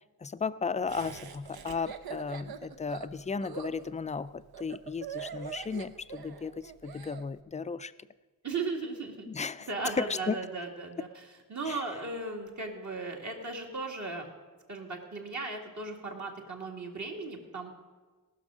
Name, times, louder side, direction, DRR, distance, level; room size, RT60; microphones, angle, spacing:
voice 1, 0.2-7.9 9.3-9.7 10.0-10.4 11.7-11.8, left 5 dB, 20° left, 15 dB, 0.3 m, -35 dB
Laughter, 0.9-7.2, right 8 dB, 80° right, 0.9 m, -43 dB
voice 2, 8.4-9.3 9.7-11.2 11.5-14.3 14.7-17.7, right 3 dB, 50° right, 1 dB, 2.2 m, -36 dB
18.5 x 6.3 x 6.3 m, 1.4 s
wide cardioid pair, 100°, 36 cm